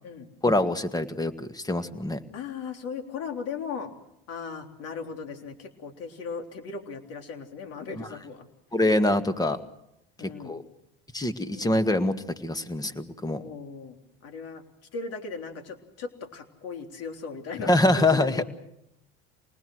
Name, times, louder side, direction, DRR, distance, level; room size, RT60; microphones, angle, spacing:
voice 1, 0.4-2.2 8.0-8.1 8.7-9.6 10.2-10.6 11.1-13.4 17.7-18.4, left 1 dB, 10° left, 10 dB, 1.9 m, -25 dB
voice 2, 2.3-3.9 4.3-8.4 10.2-10.5 11.5-11.7 13.3-14.0 14.2-14.6 14.9-18.4, left 5 dB, 55° left, 6 dB, 3.6 m, -37 dB
27.5 x 19.5 x 6.4 m, 0.81 s
hypercardioid pair, 85°, 30 cm